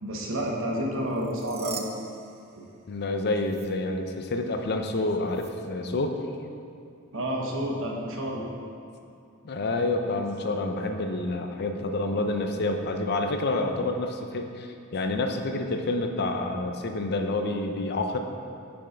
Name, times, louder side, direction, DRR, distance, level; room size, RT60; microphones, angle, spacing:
voice 1, 0.0-1.9 7.1-8.5, equal, 65° right, -1 dB, 1.2 m, -30 dB
sound 1, 1.1-3.1 3.4-3.7 5.3-5.5, right 7 dB, 30° right, 0.5 m, -43 dB
voice 2, 2.9-6.2 9.4-18.2, left 2 dB, 50° left, 5 dB, 0.6 m, -28 dB
7.1 x 5.5 x 5.2 m, 2.4 s
head